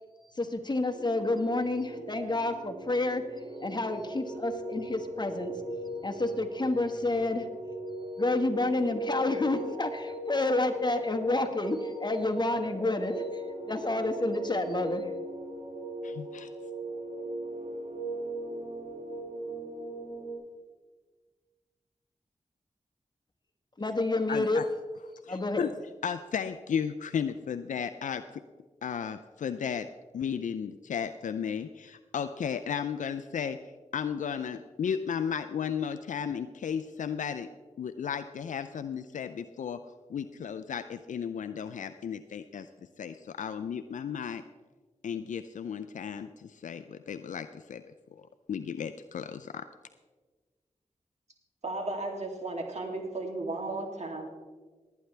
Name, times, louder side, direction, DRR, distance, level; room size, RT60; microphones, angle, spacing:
voice 1, 0.4-3.2 3.6-5.5 6.0-7.5 8.2-13.4 13.7-15.0 23.8-24.6 25.3-25.7, left 2 dB, 35° left, 5 dB, 1.5 m, -29 dB
sound 1, 0.9-20.3, right 1 dB, 90° right, 3.2 m, -38 dB
voice 2, 16.0-16.5 24.3-24.7 25.2-25.7 26.0-28.4 28.8-29.9 30.1-37.5 37.8-39.8 40.1-42.7 43.0-44.4 45.0-47.8 48.1-49.7, left 7 dB, 80° left, 9 dB, 0.4 m, -34 dB
voice 3, 51.6-54.3, right 2 dB, 60° right, 2 dB, 2.6 m, -35 dB
19.5 x 9.4 x 3.3 m, 1.4 s
cardioid pair, 45°, 13 cm